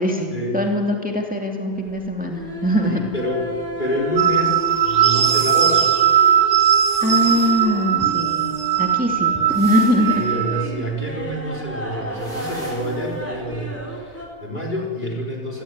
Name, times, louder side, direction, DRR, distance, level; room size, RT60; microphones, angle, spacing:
voice 1, 0.0-3.0 7.0-10.2, left 1 dB, 5° right, 1 dB, 2.5 m, -22 dB
sound 1, 1.7-14.3, equal, 10° left, 4.5 m, -33 dB
voice 2, 2.8-5.9 10.1-15.6, equal, 45° left, -1 dB, 4.4 m, -27 dB
sound 2, 4.2-10.7, right 9 dB, 90° right, 1.4 m, -19 dB
sound 3, 6.7-7.7 9.5-10.3 12.1-13.2, right 1 dB, 55° right, 6.0 m, -42 dB
27.5 x 17.5 x 9.7 m, 2.1 s
omnidirectional pair, 1.2 m